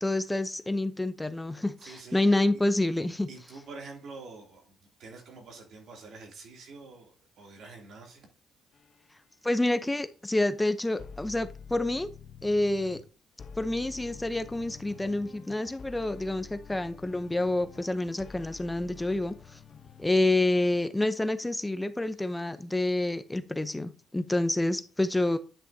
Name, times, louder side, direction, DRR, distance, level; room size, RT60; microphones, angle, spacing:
voice 1, 0.0-3.3 9.4-12.1 12.4-13.0 13.6-19.6 20.0-25.4, left 2 dB, 10° left, 10 dB, 0.7 m, -28 dB
voice 2, 1.8-2.4 3.3-8.3 22.2-22.6, right 3 dB, 70° right, 2 dB, 2.7 m, -47 dB
sound 1, 8.7-9.0 11.0-13.1 13.4-20.5, left 6 dB, 50° left, 0.8 m, -48 dB
10.0 x 6.1 x 2.7 m, 0.35 s
cardioid pair, 90°, 0 cm